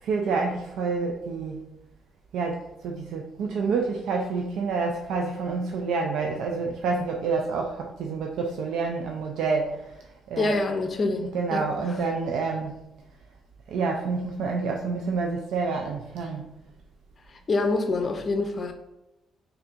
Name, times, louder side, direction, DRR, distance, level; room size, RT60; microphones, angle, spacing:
voice 1, 0.0-1.7 2.3-10.6 11.3-12.8 13.7-16.5, right 4 dB, 80° right, 1 dB, 0.3 m, -28 dB
voice 2, 10.4-11.7 17.3-18.7, left 3 dB, 40° left, 6 dB, 0.5 m, -26 dB
4.2 x 2.6 x 2.4 m, 0.88 s
cardioid pair, 90°, 0 cm